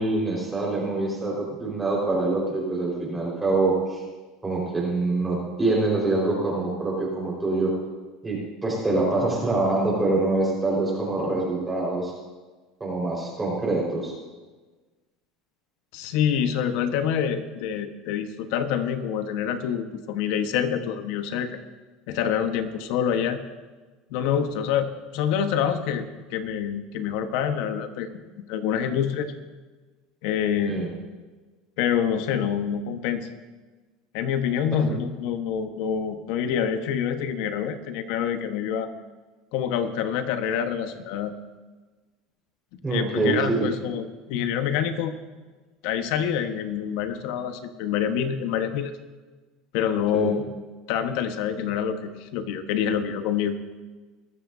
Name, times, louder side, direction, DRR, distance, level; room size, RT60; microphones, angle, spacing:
voice 1, 0.0-4.0 4.4-7.7 8.2-12.1 12.8-14.1 30.7-30.9 34.8-35.0 42.8-43.7 50.1-50.4, right 2 dB, 15° right, -4 dB, 4.8 m, -25 dB
voice 2, 15.9-21.6 22.1-23.4 24.1-29.3 30.2-30.9 31.8-33.3 34.1-38.9 39.5-41.3 42.9-45.1 45.8-48.9 49.7-50.4 50.9-53.6, left 8 dB, 70° left, 7 dB, 1.3 m, -26 dB
21.0 x 13.0 x 2.8 m, 1.3 s
supercardioid pair, 110°, 0 cm